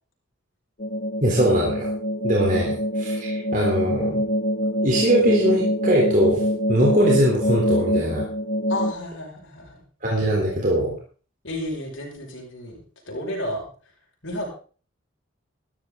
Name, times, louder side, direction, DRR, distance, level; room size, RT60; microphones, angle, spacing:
sound 1, 0.8-8.9, equal, 45° left, 1.1 m, -25 dB
voice 1, 1.2-1.9 2.2-4.2 4.8-6.4 6.7-8.2 10.0-10.9, equal, 40° right, -3 dB, 3.6 m, -21 dB
voice 2, 8.7-9.8 11.4-12.8 13.1-13.7 14.2-14.5, left 1 dB, 70° left, -2 dB, 5.6 m, -31 dB
15.0 x 12.5 x 3.9 m, 0.39 s
head